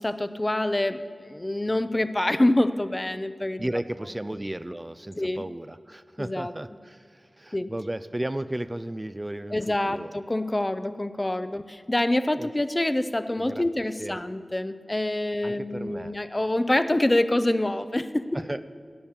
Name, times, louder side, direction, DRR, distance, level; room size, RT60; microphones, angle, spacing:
voice 1, 0.0-3.7 5.2-5.5 6.2-6.5 7.5-7.7 9.5-18.4, left 1 dB, 30° left, 12 dB, 0.6 m, -26 dB
voice 2, 3.6-10.1 12.4-12.5 13.4-13.6 14.0-14.2 15.4-16.1 18.3-18.6, right 1 dB, 25° right, 13 dB, 0.4 m, -34 dB
12.5 x 8.5 x 7.2 m, 2.1 s
cardioid pair, 40°, 0 cm